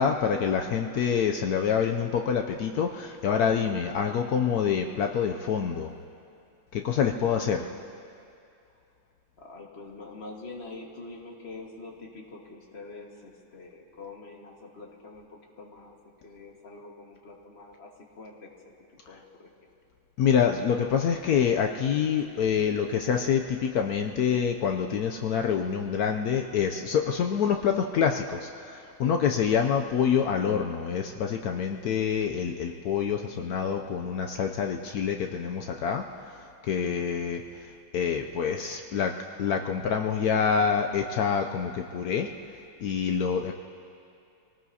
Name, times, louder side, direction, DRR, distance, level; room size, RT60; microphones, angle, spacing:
voice 1, 0.0-5.9 6.7-7.6 20.2-36.4 36.7-37.4 37.9-39.1 39.4-42.3 42.8-43.5, left 7 dB, 90° left, 4 dB, 0.8 m, -26 dB
voice 2, 7.2-8.0 9.4-16.0 16.2-18.7 19.1-19.7 43.2-43.5, left 3 dB, 30° left, -1 dB, 1.7 m, -45 dB
26.5 x 18.5 x 2.8 m, 2.5 s
omnidirectional pair, 2.3 m